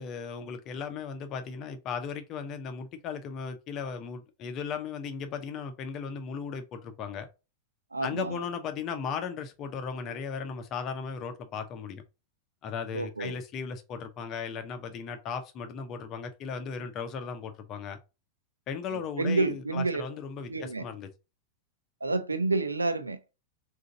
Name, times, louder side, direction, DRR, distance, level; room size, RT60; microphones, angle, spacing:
voice 1, 0.0-7.3 8.0-12.0 12.6-18.0 18.7-21.1, left 6 dB, 35° left, 0.7 m, -36 dB
voice 2, 7.9-8.4 12.9-13.4 18.9-20.0 20.4-20.8 22.0-23.2, right 3 dB, 80° right, 0.5 m, -29 dB
3.8 x 2.7 x 3.8 m
figure-of-eight pair, 90°, 0 cm